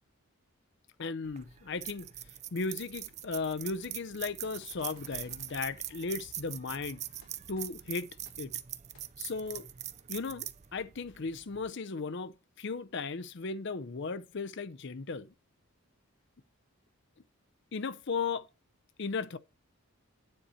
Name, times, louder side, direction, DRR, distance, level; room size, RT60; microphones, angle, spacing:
voice 1, 1.0-2.1 2.5-7.0 7.5-8.1 8.4-8.6 9.2-9.7 10.1-15.3 17.7-18.5 19.0-19.4, left 4 dB, 50° left, 0.6 m, -36 dB
sound 1, 1.3-11.7, right 12 dB, 30° right, 0.4 m, -43 dB
sound 2, 4.4-5.6 7.2-7.3 7.5-7.6 8.2-8.3 8.9-9.0, left 2 dB, 75° left, 3.1 m, -59 dB
9.6 x 4.2 x 5.6 m
head